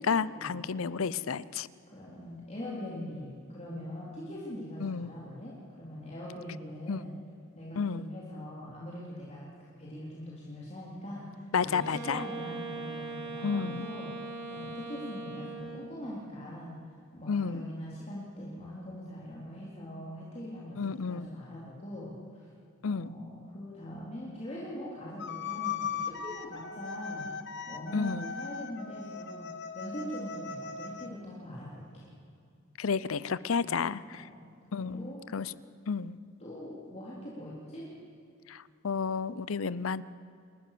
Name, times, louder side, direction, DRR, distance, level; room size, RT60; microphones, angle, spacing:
voice 1, 0.1-1.7 4.8-5.1 6.9-7.0 7.8-8.1 11.5-12.2 13.4-13.9 17.3-17.7 20.8-21.3 22.8-23.1 27.9-28.3 32.8-34.2 34.7-35.5 35.9-36.2 38.5-40.0, left 5 dB, 85° left, 18 dB, 0.6 m, -31 dB
voice 2, 1.9-7.1 7.6-22.5 22.9-29.5 29.7-32.1 33.6-33.8 34.1-34.5 34.7-35.5 36.4-37.9, left 1 dB, 35° left, -6 dB, 3.7 m, -42 dB
Wind instrument woodwind instrument, 11.7-16.0, right 2 dB, 55° right, 5.3 m, -41 dB
sound 1, 25.2-31.1, left 6 dB, 60° left, 1.3 m, -38 dB
29.0 x 14.5 x 6.8 m, 2.5 s
head